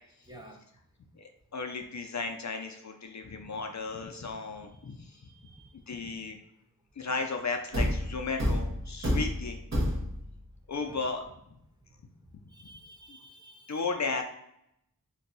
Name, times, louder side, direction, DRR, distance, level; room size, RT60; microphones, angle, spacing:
voice 1, 0.3-0.6 5.2-5.7 10.7-11.0 12.5-13.9, right 1 dB, 10° right, 1 dB, 0.5 m, -52 dB
voice 2, 1.2-5.2 5.7-6.4 7.0-9.6 10.7-11.6 12.3-12.4 13.1-13.2 13.7-14.2, left 4 dB, 50° left, 4 dB, 0.4 m, -35 dB
Thump thud, 7.7-10.4, equal, 50° right, 1.0 m, -29 dB
2.6 x 2.2 x 4.0 m, 0.77 s
wide cardioid pair, 50°, 36 cm